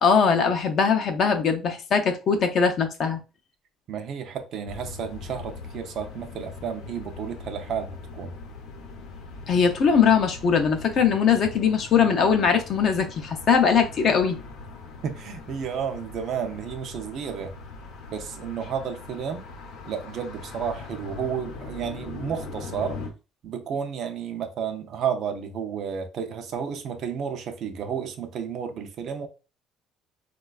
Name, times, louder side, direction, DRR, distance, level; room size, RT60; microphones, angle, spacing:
voice 1, 0.0-3.2 9.5-14.4, left 6 dB, 40° left, 0.4 m, -21 dB
voice 2, 3.9-8.3 15.0-17.5 18.1-19.5 19.9-23.0 23.4-29.3, right 7 dB, 45° right, 0.4 m, -32 dB
sound 1, 4.7-23.1, left 4 dB, 65° left, 0.7 m, -41 dB
3.9 x 2.2 x 2.3 m
cardioid pair, 175°, 0 cm